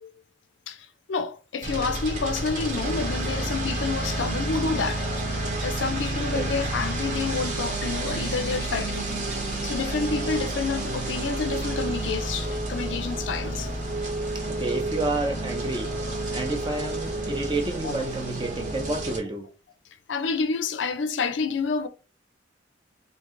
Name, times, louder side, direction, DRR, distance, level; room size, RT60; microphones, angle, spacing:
voice 1, 0.7-5.1 5.6-13.7 14.2-14.3 15.3-15.4 17.8-17.9 20.1-21.9, left 5 dB, 75° left, 0.5 m, -29 dB
sound 1, 1.6-19.2, right 2 dB, 45° right, 1.0 m, -30 dB
sound 2, 2.0-2.1 2.4-3.3 3.6-3.8 4.1-4.2 4.5-5.7 6.0-6.1 6.6-6.7 8.1-8.2 8.5-8.6 8.9-9.0 9.3-9.4, right 4 dB, 90° right, 1.1 m, -46 dB
sound 3, 6.0-17.2, left 1 dB, 70° right, 1.5 m, -45 dB
voice 2, 14.5-16.0 16.3-19.5, right 2 dB, 25° right, 0.7 m, -30 dB
3.0 x 2.8 x 3.7 m
head